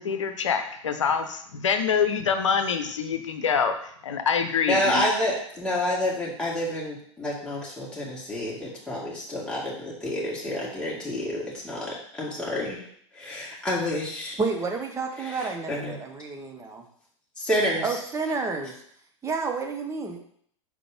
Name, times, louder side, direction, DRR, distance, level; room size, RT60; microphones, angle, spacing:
voice 1, 0.0-5.1, left 6 dB, 75° left, 7 dB, 0.8 m, -25 dB
voice 2, 4.7-12.8 13.1-14.4 15.2-15.9 17.4-17.9, left 1 dB, 5° left, -7 dB, 2.1 m, -29 dB
voice 3, 14.4-16.9 17.8-18.8 19.2-20.2, right 4 dB, 20° right, 4 dB, 1.0 m, -30 dB
5.0 x 4.0 x 5.1 m, 0.64 s
figure-of-eight pair, 90°, 16 cm